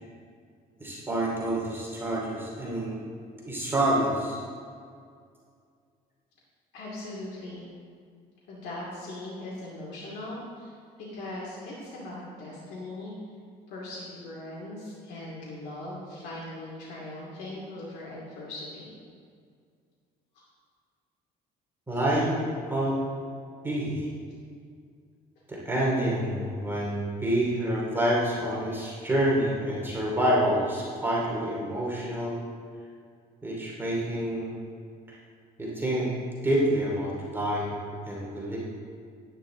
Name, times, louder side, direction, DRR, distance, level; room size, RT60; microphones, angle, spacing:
voice 1, 0.8-2.9 3.4-4.4 21.9-23.0 23.6-24.1 25.5-32.4 33.4-34.6 35.1-35.2 35.6-36.1 36.4-37.8 38.1-38.6, right 1 dB, 15° right, -5 dB, 2.6 m, -27 dB
voice 2, 6.7-7.6 8.5-10.7 11.1-13.1 13.7-18.9 20.3-20.4, left 1 dB, 85° left, -7 dB, 2.5 m, -39 dB
11.0 x 9.9 x 3.8 m, 2.2 s
cardioid pair, 110°, 17 cm